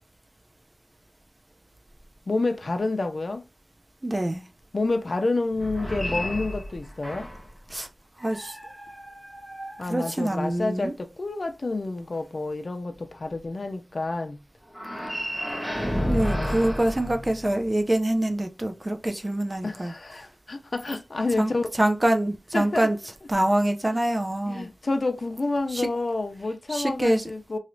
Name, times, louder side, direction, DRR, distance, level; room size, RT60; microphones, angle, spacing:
voice 1, 2.3-3.4 4.7-7.3 9.8-14.4 15.9-16.6 19.6-21.7 22.5-22.9 24.4-27.6, left 2 dB, 60° left, 0.5 m, -29 dB
voice 2, 4.0-4.4 7.7-7.9 8.2-8.6 9.8-10.9 16.0-19.9 21.4-21.5 21.8-23.0 23.3-24.7 25.7-25.9 26.7-27.3, right 1 dB, 30° right, 0.5 m, -25 dB
sound 1, 5.5-7.6 8.2-10.6 14.7-17.9, equal, 5° right, 1.0 m, -32 dB
3.1 x 2.8 x 2.6 m
wide cardioid pair, 70°, 0 cm